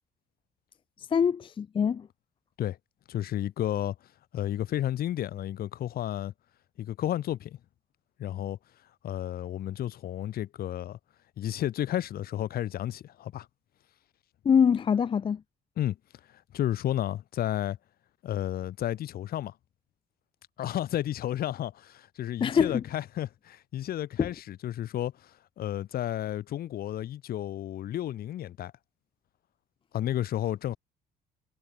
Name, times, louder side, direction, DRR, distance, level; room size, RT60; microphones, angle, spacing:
voice 1, 1.0-2.1 14.4-15.4 22.4-22.8 24.2-24.3, left 7 dB, 30° left, 0.5 m, -24 dB
voice 2, 3.1-4.0 4.3-6.3 6.8-7.6 8.2-8.6 9.0-11.0 11.4-13.5 15.8-16.0 16.5-17.8 18.2-19.5 20.6-28.7 29.9-30.8, left 12 dB, 65° left, 3.5 m, -32 dB
cardioid pair, 110°, 17 cm